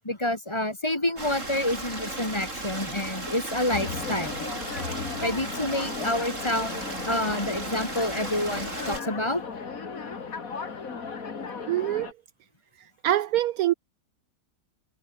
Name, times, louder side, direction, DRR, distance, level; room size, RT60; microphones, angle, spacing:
voice 1, 0.0-4.5 5.2-9.4, left 1 dB, 15° left, 1.8 m, -28 dB
Stream, 1.2-9.0, right 2 dB, 50° right, 6.2 m, -35 dB
sound 1, 3.7-12.1, left 5 dB, 55° left, 2.6 m, -36 dB
voice 2, 11.7-12.1 13.0-13.7, right 13 dB, 70° right, 1.0 m, -24 dB
omnidirectional pair, 1.7 m